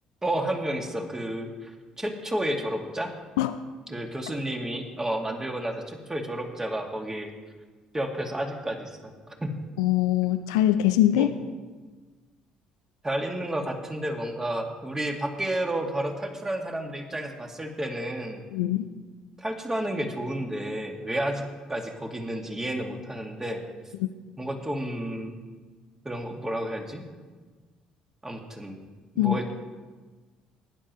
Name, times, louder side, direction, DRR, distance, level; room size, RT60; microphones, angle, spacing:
voice 1, 0.2-1.7 2.0-3.1 3.9-7.3 7.9-9.5 11.1-11.3 13.0-18.4 19.4-21.4 21.7-23.6 24.4-25.4 26.0-27.1 28.2-28.8 29.1-29.5, right 1 dB, 15° right, 2 dB, 2.2 m, -31 dB
voice 2, 9.8-11.3 18.5-18.8 29.2-29.4, left 13 dB, 80° left, 9 dB, 0.4 m, -22 dB
19.5 x 10.0 x 3.1 m, 1.4 s
hypercardioid pair, 55°, 3 cm